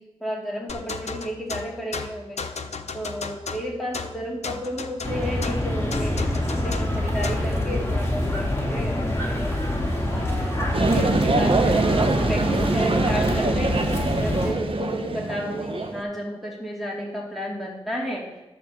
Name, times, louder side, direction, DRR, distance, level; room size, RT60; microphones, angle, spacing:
voice 1, 0.0-2.4 2.9-9.7 10.1-18.3, equal, ahead, -3 dB, 3.0 m, -32 dB
sound 1, 0.7-7.5, left 5 dB, 90° left, 0.7 m, -35 dB
sound 2, 5.0-14.5, left 1 dB, 25° left, 2.5 m, -26 dB
sound 3, 10.7-16.0, right 2 dB, 55° right, 1.0 m, -23 dB
11.5 x 4.4 x 7.1 m, 1.0 s
wide cardioid pair, 65°, 11 cm